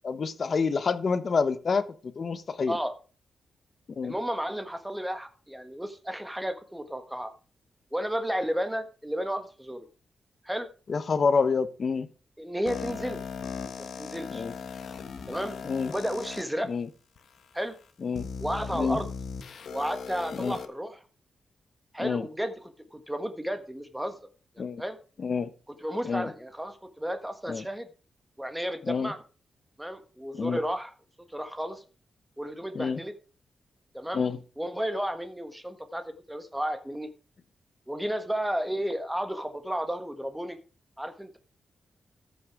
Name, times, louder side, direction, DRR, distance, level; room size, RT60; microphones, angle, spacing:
voice 1, 0.0-2.8 4.0-4.1 10.9-12.1 14.3-14.5 15.6-15.9 16.7-16.9 18.0-18.3 18.7-19.0 20.3-20.6 22.0-22.3 24.6-24.8 25.2-25.5 26.0-26.3 27.5-27.6 28.9-29.1 30.3-30.6 32.7-33.0 34.1-34.4, left 5 dB, 45° left, 1.0 m, -28 dB
voice 2, 4.0-7.3 7.9-9.9 10.4-10.7 12.4-13.2 13.8-14.4 15.3-15.6 15.9-16.7 17.5-17.7 18.4-19.1 19.7-21.0 21.9-24.2 24.5-25.0 25.8-27.9 28.4-29.2 29.8-30.9 31.3-31.8 32.4-33.1 33.9-34.2 34.6-37.1 37.9-40.6 41.0-41.4, equal, 5° right, 1.5 m, -32 dB
sound 1, 12.7-16.4 17.2-17.3 18.1-20.7, left 5 dB, 65° left, 1.3 m, -38 dB
13.5 x 6.2 x 4.8 m
wide cardioid pair, 130°, 0 cm